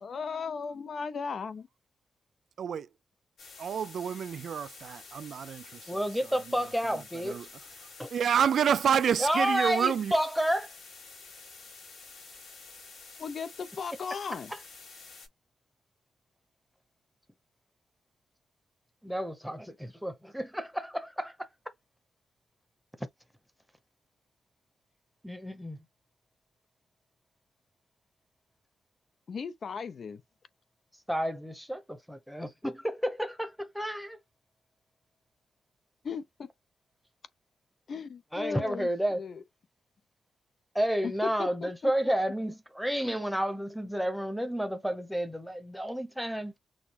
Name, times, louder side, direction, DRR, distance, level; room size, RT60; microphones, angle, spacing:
voice 1, 0.0-1.7 13.2-14.5 29.3-30.2 36.0-36.5 37.9-39.4 41.0-41.1 41.4-41.9, left 5 dB, 50° left, 0.6 m, -37 dB
voice 2, 2.6-2.9 3.6-5.6 7.3-7.5 8.1-10.1, right 8 dB, 65° right, 0.4 m, -28 dB
sound 1, 3.4-15.3, left 4 dB, 75° left, 3.8 m, -49 dB
voice 3, 5.9-7.4 8.0-8.1 9.2-10.7 19.1-21.5 23.0-23.1 25.2-25.8 31.1-34.2 38.3-39.2 40.7-46.5, equal, ahead, 0.9 m, -31 dB
6.3 x 2.2 x 3.5 m
wide cardioid pair, 140°, 0 cm